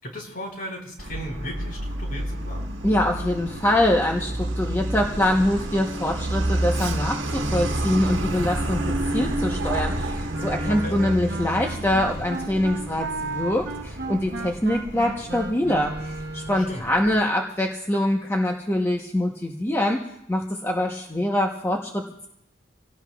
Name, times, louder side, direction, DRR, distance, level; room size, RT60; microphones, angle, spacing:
voice 1, 0.0-2.7 10.6-11.0 16.7-16.8, equal, 50° left, 1 dB, 4.5 m, -36 dB
Truck, 1.0-17.2, right 1 dB, 80° right, 1.5 m, -30 dB
voice 2, 2.8-20.0 20.3-22.3, left 1 dB, 15° left, 0 dB, 1.0 m, -24 dB
Wind instrument woodwind instrument, 10.3-16.7, right 3 dB, 60° right, 1.0 m, -34 dB
27.0 x 18.0 x 2.4 m, 0.80 s
head